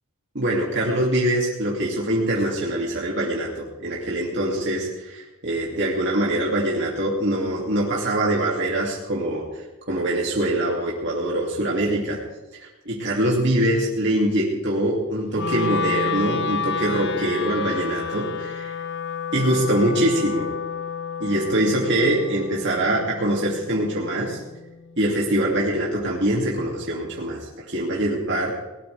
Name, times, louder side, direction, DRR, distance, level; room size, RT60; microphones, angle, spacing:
voice 1, 0.3-12.2 12.5-18.7 19.3-20.5 21.2-24.4 25.0-28.5, right 1 dB, 55° right, -4 dB, 2.8 m, -23 dB
Wind instrument woodwind instrument, 15.3-25.5, left 6 dB, 55° left, 0.6 m, -31 dB
21.0 x 19.5 x 3.5 m, 1.1 s
head